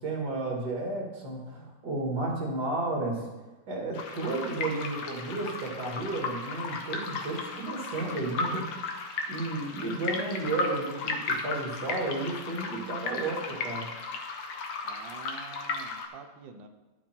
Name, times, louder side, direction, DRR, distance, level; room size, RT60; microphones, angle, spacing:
voice 1, 0.0-3.3 3.7-8.7 9.3-13.9, right 2 dB, 60° right, -1 dB, 2.7 m, -32 dB
sound 1, 3.9-16.1, left 4 dB, 90° left, 1.8 m, -35 dB
voice 2, 14.8-16.7, right 5 dB, 80° right, 6 dB, 1.6 m, -47 dB
11.0 x 7.6 x 4.4 m, 1.1 s
omnidirectional pair, 2.0 m